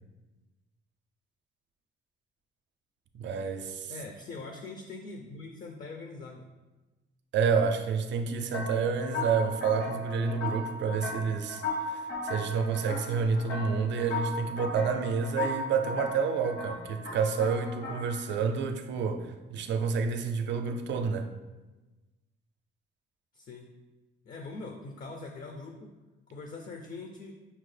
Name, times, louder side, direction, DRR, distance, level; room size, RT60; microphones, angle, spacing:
voice 1, 3.1-3.9 7.3-11.6 11.9-21.3, right 5 dB, 65° right, 7 dB, 0.4 m, -29 dB
voice 2, 3.9-6.5 23.3-23.7 24.3-25.9 26.3-27.3, left 3 dB, 45° left, 3 dB, 0.4 m, -42 dB
sound 1, 8.5-18.4, left 2 dB, 65° left, 0.8 m, -36 dB
5.5 x 2.0 x 3.2 m, 1.1 s
cardioid pair, 90°, 20 cm